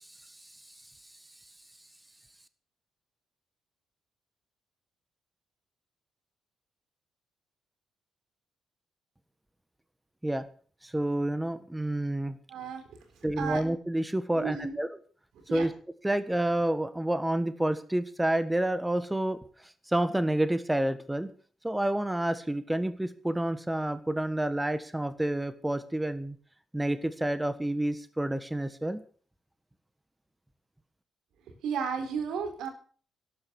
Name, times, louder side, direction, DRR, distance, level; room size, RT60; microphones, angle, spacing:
voice 1, 10.8-12.4 13.2-14.9 15.5-15.7 16.0-19.4 19.9-21.3 21.6-26.4 26.7-29.0, right 1 dB, 10° right, 12 dB, 1.4 m, -29 dB
voice 2, 12.5-12.8 13.4-13.6 14.3-14.8 15.3-15.7 31.6-32.7, right 6 dB, 80° right, 7 dB, 4.2 m, -33 dB
13.0 x 12.0 x 7.0 m, 0.43 s
cardioid pair, 90°, 0 cm